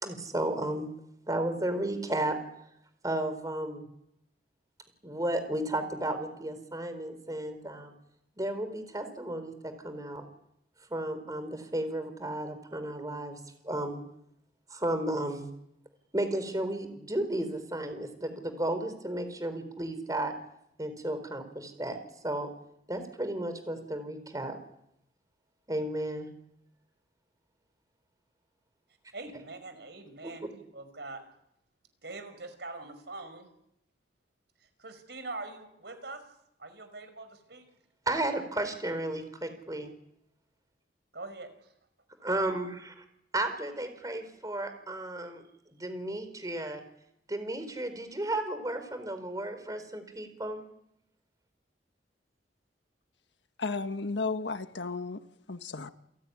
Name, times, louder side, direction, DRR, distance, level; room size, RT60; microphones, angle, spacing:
voice 1, 0.0-0.9 1.3-2.4 3.0-3.8 5.0-7.9 8.4-10.2 10.9-13.4 13.6-14.0 14.7-15.5 16.1-20.3 20.8-22.0 22.2-22.5 22.9-24.6 25.7-26.3 30.2-30.3 38.1-39.9 42.2-43.0 43.3-45.4 45.7-46.8 47.3-50.6, right 1 dB, 20° right, 9 dB, 4.3 m, -33 dB
voice 2, 29.1-31.2 32.0-33.5 34.8-36.2 36.6-37.7 41.1-41.7, right 3 dB, 70° right, 10 dB, 5.3 m, -43 dB
voice 3, 53.6-55.2 55.5-55.9, left 3 dB, 85° left, 8 dB, 1.5 m, -33 dB
29.5 x 18.0 x 9.9 m, 0.78 s
head